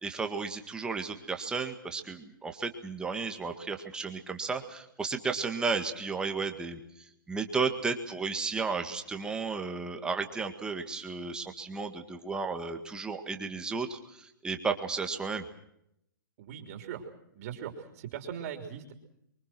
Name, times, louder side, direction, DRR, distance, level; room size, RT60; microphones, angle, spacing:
voice 1, 0.0-6.8 7.3-15.5, right 4 dB, 5° right, 6 dB, 1.8 m, -33 dB
voice 2, 16.4-17.0 17.3-18.9, right 9 dB, 40° right, 5 dB, 3.4 m, -40 dB
25.0 x 23.5 x 6.1 m, 0.75 s
hypercardioid pair, 155°, 11 cm